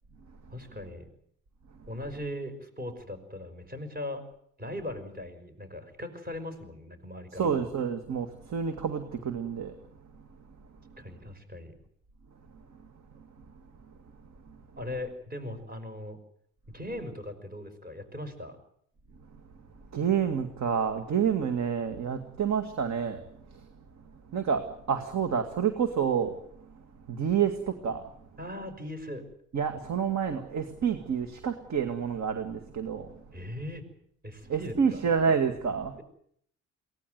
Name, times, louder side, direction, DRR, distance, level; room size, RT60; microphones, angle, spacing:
voice 1, 0.5-1.1 1.9-4.2 4.6-7.5 11.0-11.7 14.8-16.2 16.7-18.6 28.4-29.2 33.3-33.9 34.2-35.0, left 1 dB, 30° right, 7 dB, 5.7 m, -39 dB
voice 2, 7.3-9.7 19.9-23.2 23.5-23.6 24.3-24.6 24.9-26.3 27.1-28.1 29.5-33.1 34.5-36.0, right 7 dB, 60° right, 7 dB, 2.1 m, -28 dB
23.0 x 18.0 x 9.4 m, 0.68 s
cardioid pair, 90°, 30 cm